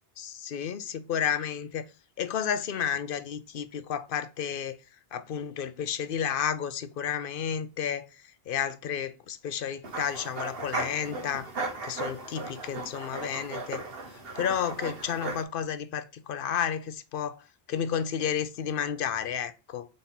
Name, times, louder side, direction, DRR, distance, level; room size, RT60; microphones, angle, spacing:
voice 1, 0.2-1.8 2.2-4.8 5.1-8.1 8.5-11.5 11.8-13.8 14.4-17.4 17.7-19.9, left 8 dB, 65° left, 0.8 m, -31 dB
sound 1, 9.8-15.4, right 3 dB, 70° right, 1.4 m, -36 dB
4.2 x 4.0 x 5.6 m
omnidirectional pair, 1.0 m